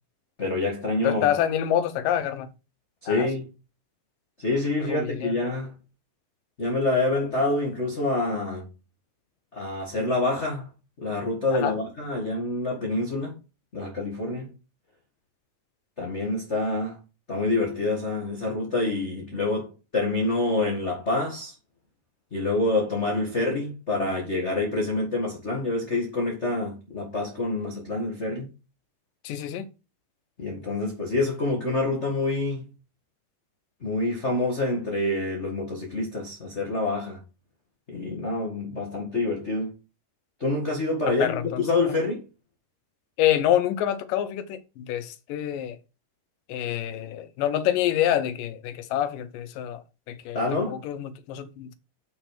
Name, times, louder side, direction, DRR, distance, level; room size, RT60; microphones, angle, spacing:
voice 1, 0.4-1.2 3.0-3.5 4.4-5.7 6.6-8.6 9.5-10.7 11.0-13.3 13.7-14.5 16.0-17.0 17.3-21.5 22.3-28.5 30.4-32.6 33.8-37.2 37.9-39.7 40.4-42.2 50.3-50.8, left 2 dB, 25° left, 1.7 m, -27 dB
voice 2, 1.0-2.5 3.1-3.3 4.8-5.4 11.5-11.8 29.2-29.7 41.2-42.1 43.2-45.8 46.5-51.7, left 11 dB, 85° left, 2.6 m, -27 dB
8.0 x 6.3 x 5.0 m
omnidirectional pair, 3.8 m